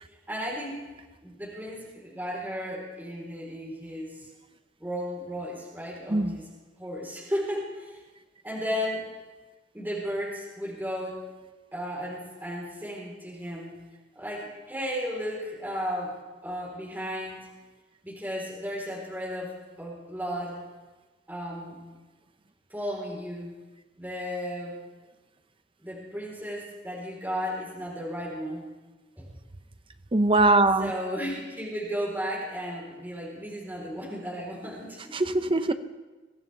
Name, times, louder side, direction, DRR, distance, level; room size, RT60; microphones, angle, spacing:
voice 1, 0.3-0.8 1.2-4.3 4.8-6.5 6.8-8.0 8.4-9.1 9.7-11.2 11.7-13.7 14.2-16.2 16.4-17.5 18.0-20.6 21.3-21.8 22.7-23.5 24.0-24.8 25.8-28.7 29.2-29.3 30.8-35.2, equal, 10° right, -4 dB, 3.8 m, -34 dB
voice 2, 30.1-30.9 35.1-35.7, right 2 dB, 30° right, 10 dB, 0.8 m, -21 dB
22.5 x 15.5 x 3.4 m, 1.2 s
head